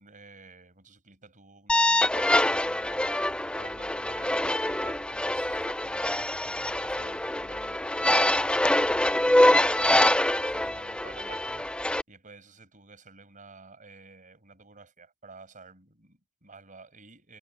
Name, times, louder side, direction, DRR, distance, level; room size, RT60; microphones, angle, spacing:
voice 1, 0.0-11.7 12.1-17.4, right 4 dB, 35° right, 6.8 m, -51 dB
sound 1, 1.7-12.0, left 1 dB, 5° left, 0.4 m, -25 dB
head